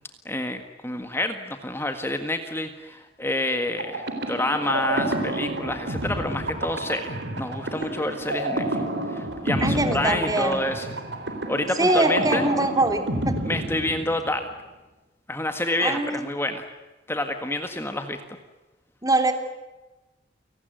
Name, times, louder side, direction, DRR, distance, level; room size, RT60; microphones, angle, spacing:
voice 1, 0.3-8.8 9.1-10.9 11.5-12.5 13.4-14.5 15.3-16.7 17.1-18.2, left 1 dB, 15° left, 7 dB, 1.7 m, -28 dB
sound 1, 3.8-14.5, right 1 dB, 75° right, 4.0 m, -29 dB
voice 2, 9.6-10.6 11.8-13.4 15.8-16.3 19.0-19.3, right 2 dB, 20° right, 7 dB, 3.2 m, -23 dB
29.5 x 19.0 x 9.2 m, 1.1 s
head